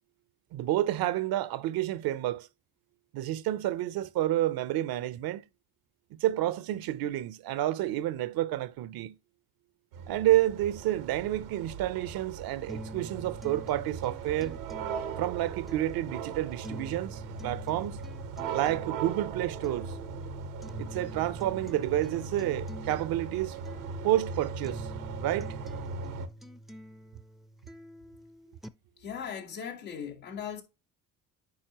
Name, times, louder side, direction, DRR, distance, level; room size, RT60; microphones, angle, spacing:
voice 1, 0.5-2.5 3.1-5.4 6.2-9.1 10.1-14.6 15.2-18.0 18.5-19.9 20.8-23.6 24.0-24.9 25.2-25.5, right 13 dB, 65° right, 0.7 m, -29 dB
sound 1, 9.9-26.3, right 5 dB, 90° right, 1.0 m, -39 dB
sound 2, 12.7-28.7, equal, ahead, 0.5 m, -47 dB
voice 2, 29.0-30.6, left 7 dB, 90° left, 2.3 m, -38 dB
9.5 x 4.3 x 2.9 m
supercardioid pair, 65°, 39 cm